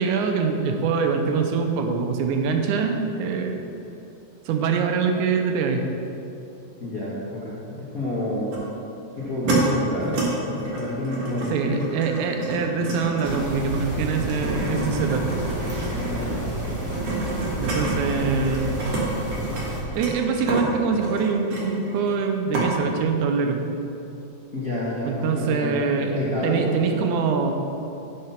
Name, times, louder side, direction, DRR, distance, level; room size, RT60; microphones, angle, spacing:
voice 1, 0.0-3.6 4.5-5.8 11.5-15.2 17.5-18.8 19.9-23.6 25.1-27.5, right 5 dB, 80° right, 4 dB, 2.2 m, -24 dB
voice 2, 6.8-8.5 9.2-11.9 15.9-16.5 24.5-27.0, left 1 dB, 45° left, -8 dB, 1.2 m, -29 dB
sound 1, 8.5-8.7 9.2-9.6 10.0-10.3 10.6-19.0 19.3-22.2 22.5-22.7, right 3 dB, 55° right, 2.7 m, -29 dB
sound 2, 13.2-19.8, right 1 dB, 10° right, 1.0 m, -31 dB
9.7 x 5.8 x 5.7 m, 2.8 s
omnidirectional pair, 3.5 m